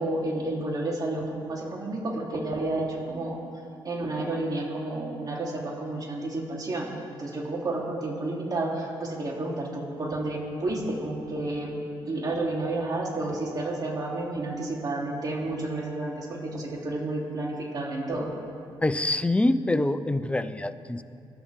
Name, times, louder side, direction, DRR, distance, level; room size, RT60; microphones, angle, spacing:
voice 1, 0.0-3.4 3.8-11.7 12.1-18.3, right 2 dB, 45° right, -3 dB, 3.8 m, -31 dB
voice 2, 18.8-21.0, left 2 dB, 10° left, 11 dB, 0.7 m, -25 dB
26.5 x 12.5 x 3.8 m, 2.4 s
cardioid pair, 90°, 9 cm